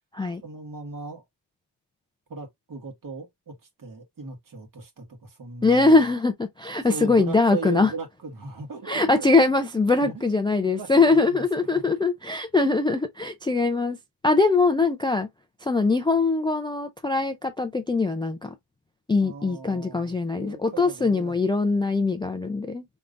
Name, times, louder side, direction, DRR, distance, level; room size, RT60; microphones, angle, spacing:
voice 1, 0.4-1.2 2.3-6.0 6.8-9.3 9.7-11.9 19.2-21.4, right 4 dB, 45° right, 1.7 m, -38 dB
voice 2, 5.6-7.9 8.9-14.0 14.2-15.3 15.6-18.5 19.1-22.8, left 3 dB, 10° left, 0.4 m, -22 dB
5.3 x 3.4 x 2.5 m
wide cardioid pair, 155°, 46 cm